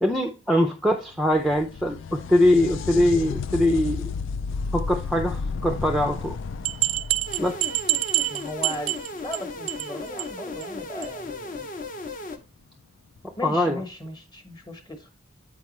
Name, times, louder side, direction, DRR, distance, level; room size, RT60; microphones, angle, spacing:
voice 1, 0.0-4.1 4.7-6.4 7.4-7.6 13.4-13.8, left 1 dB, ahead, 0.5 m, -22 dB
sound 1, 1.0-8.6 12.0-12.1 13.2-13.3, left 5 dB, 60° left, 0.3 m, -33 dB
sound 2, 6.6-9.4 9.7-9.9 10.2-10.3 10.6-10.7 11.0-11.1, right 17 dB, 85° right, 0.5 m, -26 dB
sound 3, 7.3-12.4, left 2 dB, 40° left, 0.8 m, -36 dB
voice 2, 8.3-11.7 13.4-15.1, left 1 dB, 20° left, 1.1 m, -37 dB
8.5 x 4.8 x 3.1 m
head